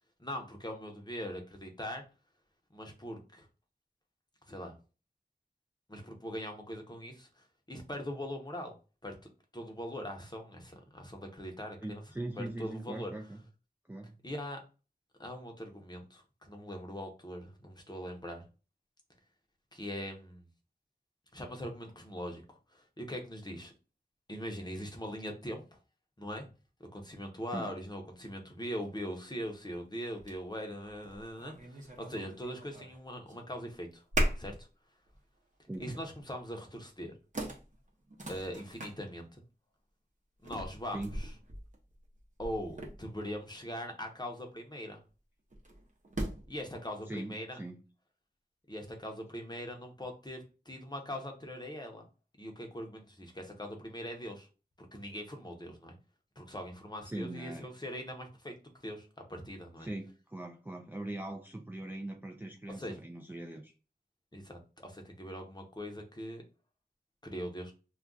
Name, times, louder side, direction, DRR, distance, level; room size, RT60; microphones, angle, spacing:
voice 1, 0.2-2.0 2.7-3.5 4.5-4.7 5.9-8.7 9.0-9.1 9.5-12.0 12.4-13.1 14.2-14.6 15.2-18.4 19.7-20.4 21.3-23.7 24.3-25.8 26.2-26.5 26.9-34.0 34.4-34.7 35.8-37.1 38.3-39.4 40.4-41.3 42.4-45.0 46.5-47.6 48.7-52.0 52.4-54.5 54.8-55.9 56.4-58.5 58.8-59.9 62.8-63.0 64.3-66.4 67.2-67.7, equal, 25° left, 3 dB, 0.7 m, -41 dB
voice 2, 11.8-13.4 13.9-14.2 27.5-27.7 35.7-35.9 40.9-41.2 47.1-47.8 57.1-57.7 59.8-63.7, right 1 dB, 10° right, 3 dB, 0.3 m, -41 dB
sound 1, 29.4-29.5 30.2-30.4 30.8-33.0 33.3-33.7 34.1-34.6 35.1-35.2 35.7-36.1 36.9-37.0 37.3-39.0 40.4-43.3 45.5-46.6, right 1 dB, 45° right, 0.7 m, -38 dB
2.3 x 2.3 x 3.7 m, 0.34 s
wide cardioid pair, 60°, 17 cm